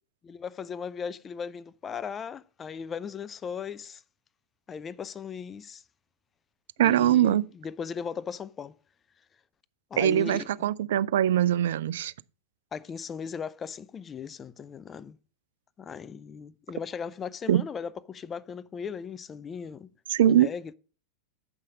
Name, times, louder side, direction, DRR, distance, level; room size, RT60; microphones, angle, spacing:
voice 1, 0.2-4.0 4.7-5.8 6.8-8.8 9.9-10.5 12.7-15.2 15.8-19.9 20.3-20.7, left 6 dB, 20° left, 0.4 m, -37 dB
voice 2, 6.8-7.4 10.0-12.1 17.5-17.6 20.1-20.5, right 11 dB, 55° right, 0.3 m, -22 dB
7.7 x 5.6 x 6.2 m
figure-of-eight pair, 90°, 0 cm